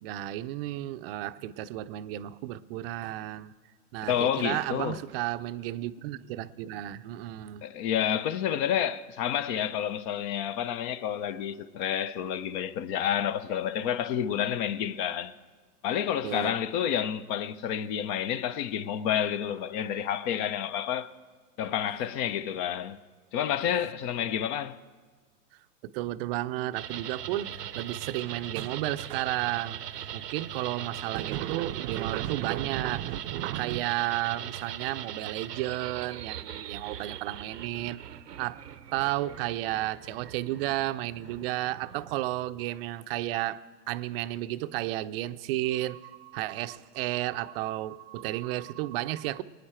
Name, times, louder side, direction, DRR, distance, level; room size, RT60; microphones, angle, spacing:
voice 1, 0.0-3.5 3.9-7.6 16.2-16.5 25.8-29.8 30.1-38.0 38.4-38.6 38.9-49.4, right 15 dB, 40° right, 0.5 m, -32 dB
voice 2, 4.1-5.0 7.6-15.3 15.8-21.1 21.6-23.0 23.3-24.8, left 9 dB, 35° left, 0.5 m, -29 dB
sound 1, 26.7-42.3, right 10 dB, 90° right, 0.8 m, -40 dB
23.0 x 9.7 x 4.4 m
hypercardioid pair, 115°, 47 cm